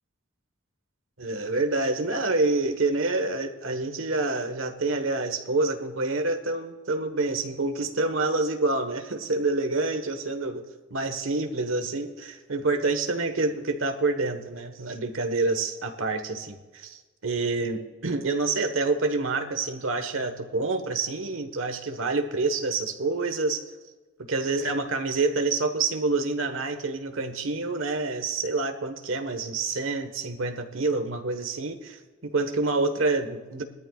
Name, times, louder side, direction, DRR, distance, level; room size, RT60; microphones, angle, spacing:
voice 1, 1.2-10.6 10.9-23.6 24.2-33.6, right 3 dB, 85° right, 7 dB, 1.4 m, -27 dB
20.5 x 13.5 x 2.4 m, 1.3 s
head